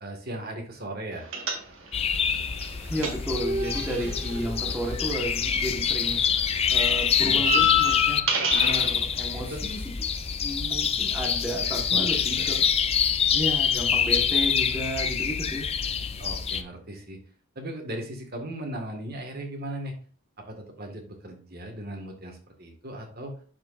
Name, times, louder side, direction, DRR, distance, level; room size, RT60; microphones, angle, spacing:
voice 1, 0.0-1.3 4.0-4.1 7.2-8.0 9.3-9.6 11.9-12.1 12.3-12.5 16.2-17.2 17.6-19.9 20.5-23.3, right 1 dB, 45° right, 3 dB, 1.7 m, -37 dB
sound 1, 1.3-2.1 2.3-5.7 6.0-8.9, left 3 dB, 65° right, 1.6 m, -28 dB
sound 2, 1.9-8.2 8.5-16.6, left 7 dB, 30° left, 0.4 m, -26 dB
voice 2, 2.9-6.2 6.7-8.2 8.5-10.0 10.4-12.6 13.3-15.7, equal, 10° right, -2 dB, 1.3 m, -32 dB
11.0 x 4.9 x 2.5 m, 0.42 s
head